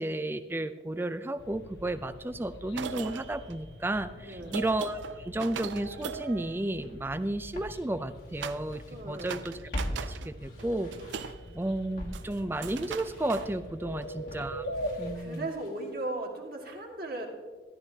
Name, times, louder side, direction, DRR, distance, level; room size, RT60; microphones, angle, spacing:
voice 1, 0.0-9.5 10.0-10.9 11.5-14.6 15.0-15.5, right 1 dB, 10° right, 12 dB, 0.4 m, -33 dB
sound 1, 1.4-15.2, equal, 65° left, 0.8 m, -44 dB
sound 2, 2.6-7.3 8.4-8.9 9.1-10.3 10.6-14.2, right 7 dB, 90° right, 0.4 m, -41 dB
voice 2, 4.2-4.6 8.9-9.4 15.1-17.3, right 2 dB, 55° right, 1 dB, 1.8 m, -37 dB
Walk footsteps, 6.8-6.9 7.5-9.0 9.3-11.6 12.0-16.0 16.3-16.4, equal, 50° left, 1.3 m, -42 dB
13.5 x 12.0 x 2.8 m, 1.4 s
head